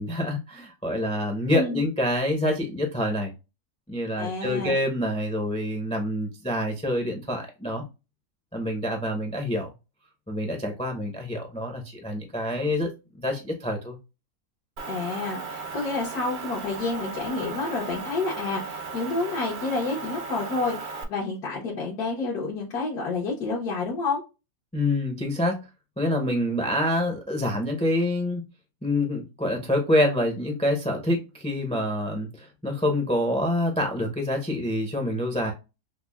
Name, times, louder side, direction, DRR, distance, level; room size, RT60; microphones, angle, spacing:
voice 1, 0.0-3.3 3.9-7.8 8.5-9.7 10.3-12.9 13.2-14.0 24.7-25.6 26.0-28.4 28.8-35.5, left 1 dB, 10° left, 3 dB, 0.4 m, -26 dB
voice 2, 4.1-4.8 14.9-24.2, left 3 dB, 85° left, -4 dB, 1.5 m, -29 dB
Motor vehicle (road) / Engine, 14.8-21.0, right 4 dB, 60° right, 0.5 m, -36 dB
5.7 x 2.1 x 2.3 m, 0.27 s
omnidirectional pair, 1.6 m